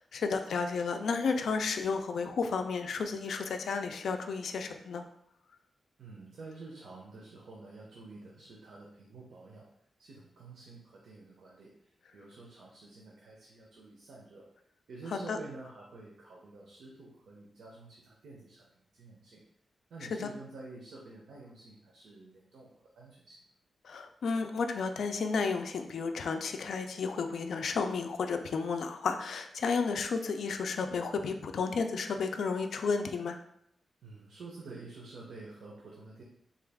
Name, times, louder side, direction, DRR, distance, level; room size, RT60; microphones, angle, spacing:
voice 1, 0.1-5.0 15.1-15.4 20.1-20.3 23.8-33.4, left 5 dB, 75° left, 6 dB, 0.3 m, -32 dB
voice 2, 6.0-9.7 10.0-14.5 14.9-19.4 19.9-22.7 22.9-23.4 34.0-36.2, right 3 dB, 85° right, -3 dB, 0.6 m, -49 dB
3.8 x 2.3 x 3.4 m, 0.71 s
wide cardioid pair, 140°, 0 cm